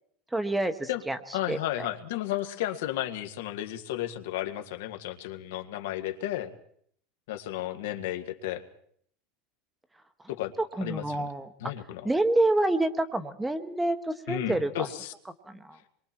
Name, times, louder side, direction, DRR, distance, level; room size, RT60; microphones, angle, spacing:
voice 1, 0.3-1.2 1.5-1.6 10.6-11.5 12.0-14.9 15.4-15.8, right 2 dB, 5° right, 9 dB, 1.0 m, -27 dB
voice 2, 1.3-6.5 7.3-8.6 10.3-10.5 10.8-11.2 11.6-12.1 14.3-15.1, left 13 dB, 80° left, 7 dB, 1.9 m, -33 dB
27.0 x 23.0 x 4.5 m, 0.65 s
supercardioid pair, 175°, 0 cm